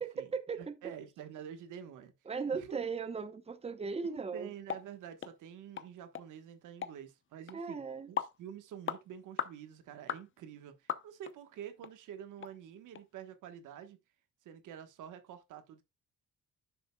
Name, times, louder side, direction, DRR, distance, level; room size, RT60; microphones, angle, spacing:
voice 1, 0.0-0.7 2.3-4.5 7.5-8.1, right 5 dB, 20° right, 0.9 m, -37 dB
voice 2, 0.5-2.1 2.5-2.8 4.1-14.0 14.4-15.8, right 9 dB, 85° right, 1.3 m, -48 dB
sound 1, 4.7-4.8 5.2-5.3 5.8-5.9 6.1-6.3 6.8-7.0 7.5-7.6 8.2-8.4 8.9-9.0 9.4-9.6 10.1-10.2 10.9-11.3 11.8-11.9 12.4-12.5 13.0-13.1, left 8 dB, 40° left, 0.8 m, -37 dB
11.0 x 6.5 x 2.3 m
cardioid pair, 90°, 30 cm